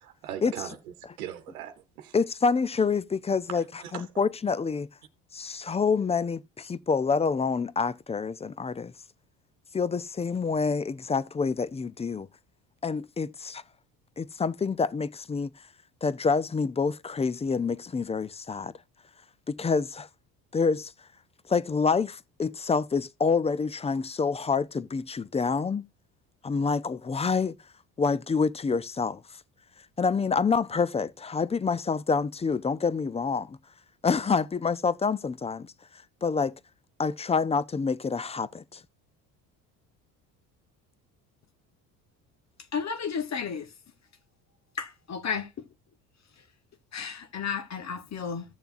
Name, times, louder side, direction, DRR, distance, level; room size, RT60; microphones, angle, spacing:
voice 1, 0.0-0.8 1.2-2.2 3.5-4.0, right 10 dB, 90° right, 1.0 m, -39 dB
voice 2, 2.1-3.6 3.9-4.9 5.3-8.9 9.7-12.3 12.8-13.6 14.2-15.5 16.0-18.7 19.5-20.1 20.5-20.9 21.5-25.8 26.4-27.5 28.0-29.2 30.0-33.6 34.0-35.7 36.2-36.5 37.0-38.8, left 5 dB, 15° left, 0.4 m, -27 dB
voice 3, 42.7-43.7 44.8-45.5 46.9-48.4, left 6 dB, 40° left, 1.2 m, -32 dB
15.5 x 6.8 x 2.5 m
hypercardioid pair, 70°, 42 cm